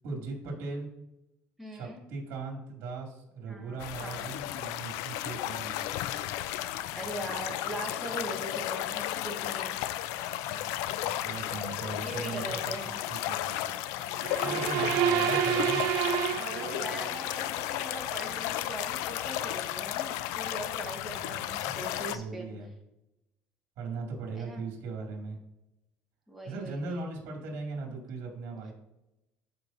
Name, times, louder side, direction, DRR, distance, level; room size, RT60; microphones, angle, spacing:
voice 1, 0.0-0.9 1.7-5.8 10.4-12.8 13.1-13.7 14.4-15.8 21.2-21.8 22.1-22.7 23.8-25.4 26.5-28.7, right 4 dB, 65° right, 0 dB, 2.1 m, -39 dB
voice 2, 1.6-2.0 3.5-4.3 6.9-9.8 12.0-13.0 14.4-15.2 16.3-22.5 24.3-24.6 26.3-27.1, right 1 dB, ahead, -2 dB, 1.5 m, -41 dB
sound 1, 3.8-22.2, left 13 dB, 90° left, 0.4 m, -34 dB
sound 2, 14.1-17.2, right 10 dB, 85° right, 0.5 m, -29 dB
13.0 x 4.7 x 2.6 m, 0.90 s
cardioid pair, 145°, 5 cm